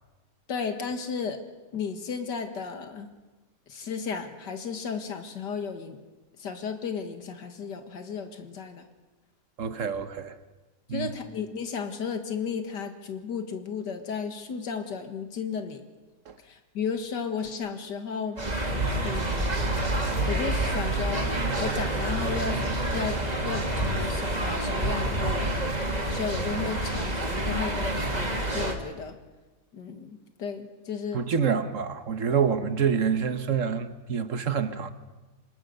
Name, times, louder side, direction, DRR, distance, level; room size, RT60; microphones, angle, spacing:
voice 1, 0.5-1.4 1.7-3.1 3.7-6.0 6.4-8.8 10.9-15.8 16.4-18.4 19.0-19.6 20.3-21.3 21.6-22.6 22.9-25.6 26.1-29.2 29.7-31.2, left 6 dB, 80° left, 2.4 m, -34 dB
voice 2, 9.6-10.3 10.9-11.1 16.3-16.4 31.1-34.9, right 6 dB, 50° right, 1.4 m, -27 dB
sound 1, 18.4-28.7, right 1 dB, 25° right, 2.1 m, -28 dB
25.5 x 20.0 x 6.7 m
omnidirectional pair, 1.8 m